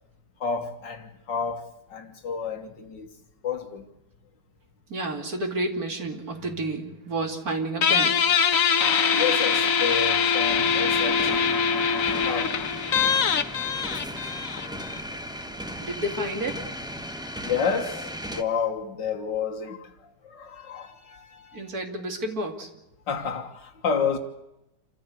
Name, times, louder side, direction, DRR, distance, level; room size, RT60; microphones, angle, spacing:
voice 1, 0.4-3.1 3.4-3.9 9.1-12.8 13.1-14.0 14.5-15.0 15.6-15.7 17.3-21.6 23.1-24.2, left 6 dB, 70° left, 2.1 m, -31 dB
voice 2, 4.9-8.1 15.8-16.6 21.5-22.7, right 1 dB, 50° right, 3.1 m, -30 dB
Guitar, 7.8-15.0, left 6 dB, 50° left, 1.3 m, -23 dB
sound 1, 10.5-18.4, equal, 5° right, 1.0 m, -36 dB
27.5 x 15.0 x 8.3 m
omnidirectional pair, 2.0 m